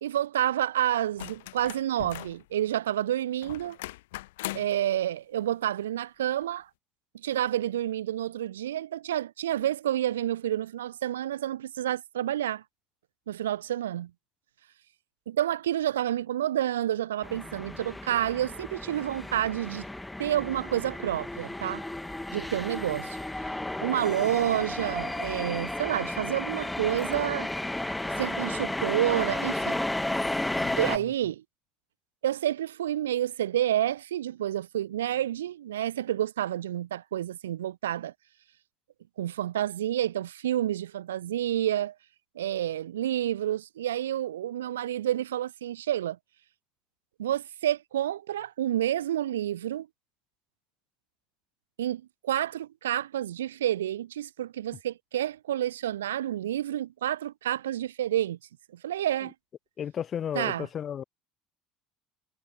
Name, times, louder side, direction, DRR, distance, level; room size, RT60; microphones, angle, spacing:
voice 1, 0.0-3.8 4.5-6.7 7.1-12.6 13.3-14.1 15.3-19.9 20.2-21.8 22.3-23.2 23.8-27.5 28.2-29.8 30.8-31.4 32.2-38.1 39.2-41.9 42.3-46.2 47.2-49.9 51.8-58.4 58.8-59.3 60.3-60.7, right 12 dB, 70° right, 0.8 m, -29 dB
sound 1, 1.2-2.4 3.4-4.8 6.4-6.5, left 19 dB, 65° left, 1.0 m, -39 dB
sound 2, 17.2-31.0, left 1 dB, 10° left, 1.9 m, -33 dB
voice 2, 30.6-31.1 59.8-61.0, left 9 dB, 40° left, 0.5 m, -34 dB
figure-of-eight pair, 60°, 0 cm